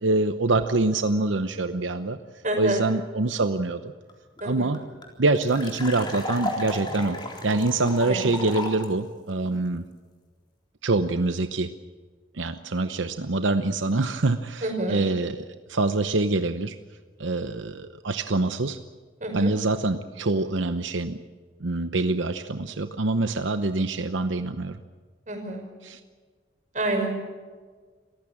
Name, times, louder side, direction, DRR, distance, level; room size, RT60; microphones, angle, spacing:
voice 1, 0.0-2.2 2.6-3.9 4.4-4.8 5.2-9.8 10.8-11.7 12.3-16.7 17.2-18.8 19.3-21.2 21.6-24.8 25.8-26.0, right 2 dB, 90° right, 9 dB, 0.9 m, -25 dB
voice 2, 2.4-2.8 4.4-4.7 8.0-8.3 14.6-15.0 19.2-19.5 25.3-25.6 26.7-27.1, right 2 dB, 40° right, 3 dB, 5.5 m, -28 dB
fpwinebottle pour in, 4.1-4.2 4.4-4.5 4.7-8.9, left 1 dB, 25° left, 3.8 m, -34 dB
27.5 x 15.0 x 8.6 m, 1.5 s
head